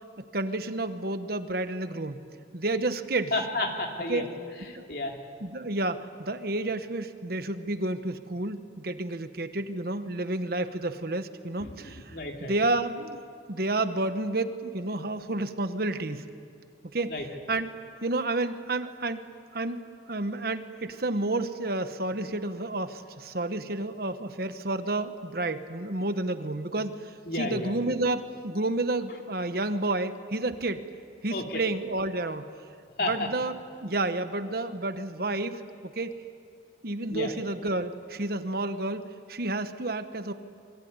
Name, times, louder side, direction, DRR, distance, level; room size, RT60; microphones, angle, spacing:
voice 1, 0.2-2.2 2.5-3.3 4.1-4.3 4.7-4.8 5.4-13.2 13.5-16.2 16.9-30.8 31.2-32.5 33.1-36.1 36.8-40.3, right 2 dB, 55° right, 10 dB, 1.2 m, -30 dB
voice 2, 3.3-4.2 4.6-5.2 11.6-12.5 17.1-17.2 27.3-27.8 31.3-31.6 33.0-33.3 37.1-37.3, left 2 dB, 55° left, 2 dB, 3.1 m, -32 dB
27.0 x 23.0 x 9.6 m, 2.2 s
head